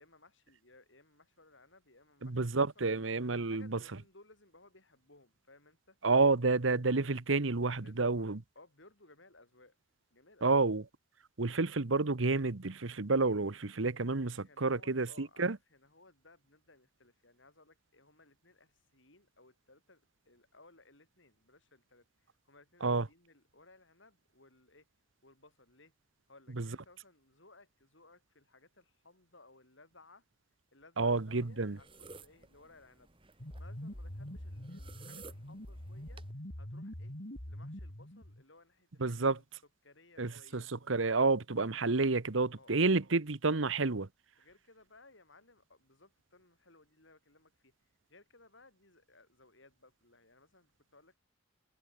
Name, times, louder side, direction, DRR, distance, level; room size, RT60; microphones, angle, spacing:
voice 1, 0.0-2.9 3.5-6.0 7.8-9.8 10.1-10.7 14.4-24.8 25.2-25.9 26.3-30.2 30.7-33.1 33.6-36.2 36.6-37.1 37.4-39.4 39.8-40.7 42.5-42.7 44.4-47.7 48.1-51.2, left 2 dB, 70° left, 7.9 m, -61 dB
voice 2, 2.2-3.8 6.0-8.4 10.4-10.8 11.4-15.6 22.8-23.1 26.6-26.7 31.0-31.8 39.0-39.4 40.2-44.1, right 3 dB, 75° right, 1.1 m, -30 dB
sound 1, 31.0-36.3, right 4 dB, 25° right, 2.6 m, -56 dB
sound 2, 33.4-38.4, equal, 50° left, 3.5 m, -44 dB
head